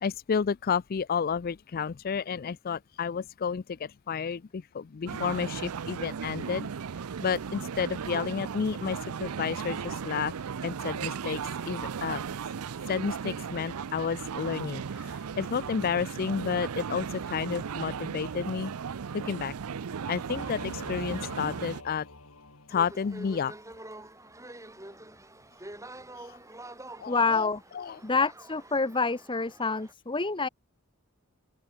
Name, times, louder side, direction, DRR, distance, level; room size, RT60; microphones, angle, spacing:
voice 1, 0.0-6.7 7.2-10.3 10.6-12.2 12.9-18.7 19.1-19.5 20.1-22.1 22.7-23.5 26.2-26.4 27.0-28.0, left 6 dB, 40° left, 0.4 m, -31 dB
sound 1, 5.1-21.8, right 6 dB, 85° right, 0.5 m, -36 dB
Singing / Musical instrument, 20.3-23.2, left 2 dB, 75° left, 4.4 m, -45 dB
sound 2, 22.7-29.9, right 1 dB, 15° right, 6.5 m, -47 dB
voice 2, 27.1-27.6 28.0-30.5, left 4 dB, 20° left, 0.9 m, -27 dB
open air
head